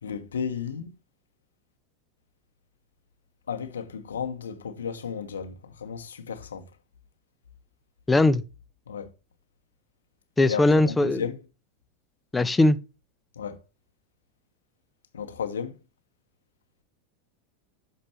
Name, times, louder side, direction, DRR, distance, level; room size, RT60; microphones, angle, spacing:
voice 1, 0.0-0.9 3.5-6.6 8.9-9.1 10.5-11.4 13.4-13.6 15.1-15.7, left 7 dB, 85° left, 1.0 m, -33 dB
voice 2, 8.1-8.4 10.4-11.2 12.3-12.8, left 2 dB, 15° left, 0.6 m, -20 dB
6.7 x 5.2 x 4.2 m
hypercardioid pair, 90°, 0 cm